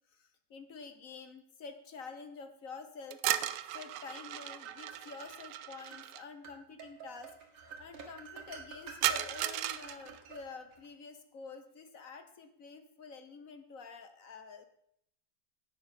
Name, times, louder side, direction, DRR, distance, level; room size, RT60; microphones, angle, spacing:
voice 1, 0.1-3.2 3.7-7.3 7.8-14.7, left 4 dB, 50° left, 8 dB, 1.3 m, -48 dB
sound 1, 3.1-6.2 9.0-10.2, right 13 dB, 90° right, 1.5 m, -35 dB
sound 2, 4.1-5.4 5.9-6.1 6.4-10.9, right 5 dB, 65° right, 2.4 m, -50 dB
11.0 x 8.1 x 6.7 m, 0.71 s
omnidirectional pair, 2.3 m